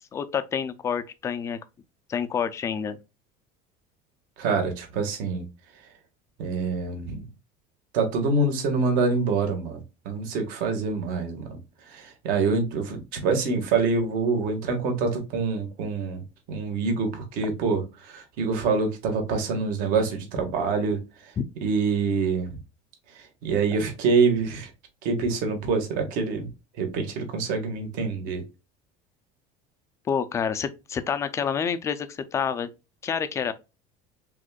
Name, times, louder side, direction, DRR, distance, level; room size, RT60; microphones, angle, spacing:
voice 1, 0.1-1.6 2.1-3.0 21.4-21.5 30.1-32.7 33.0-33.5, left 7 dB, 15° left, 0.3 m, -28 dB
voice 2, 4.4-5.4 6.4-7.2 7.9-11.6 11.9-21.3 21.6-22.5 23.1-24.7 25.0-26.5 26.8-28.4, right 4 dB, 55° right, 1.5 m, -26 dB
5.0 x 3.5 x 2.2 m
cardioid pair, 175°, 18 cm